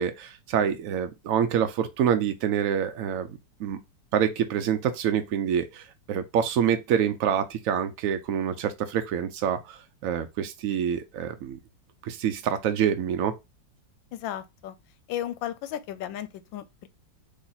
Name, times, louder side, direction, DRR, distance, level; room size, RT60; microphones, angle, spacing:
voice 1, 0.0-3.3 3.6-3.8 4.1-11.6 12.0-13.3, right 8 dB, 85° right, 0.7 m, -26 dB
voice 2, 14.1-14.8 15.1-16.9, left 11 dB, 85° left, 1.3 m, -34 dB
4.2 x 3.1 x 3.9 m
omnidirectional pair, 2.0 m